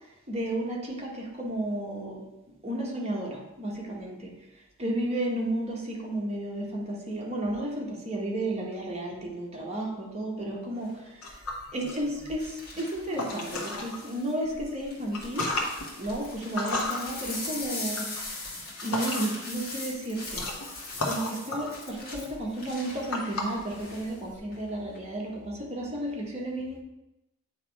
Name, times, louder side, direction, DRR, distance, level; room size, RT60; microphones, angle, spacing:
voice 1, 0.3-2.2 2.6-4.3 4.8-10.9 11.7-15.5 16.0-18.1 18.8-20.5 21.0-26.8, right 1 dB, 30° right, -2 dB, 1.3 m, -32 dB
sound 1, 10.8-11.1 12.4-14.3 14.9-24.1 24.5-25.0, left 2 dB, 45° left, 1.5 m, -40 dB
sound 2, 11.2-14.0 14.4-19.5 19.8-24.4, left 2 dB, 75° left, 1.2 m, -35 dB
8.4 x 3.1 x 4.7 m, 0.94 s
head